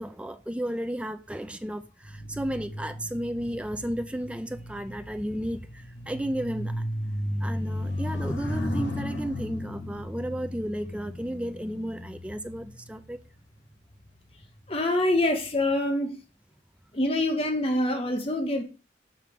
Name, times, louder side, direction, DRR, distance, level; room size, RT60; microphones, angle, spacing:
voice 1, 0.0-6.8 7.4-13.2, equal, 5° right, 0.4 m, -33 dB
sound 1, 2.0-13.7 14.4-14.7, left 1 dB, 75° left, 1.2 m, -35 dB
voice 2, 14.7-16.2 16.9-18.6, left 1 dB, 30° left, 0.8 m, -25 dB
6.1 x 5.8 x 3.5 m
head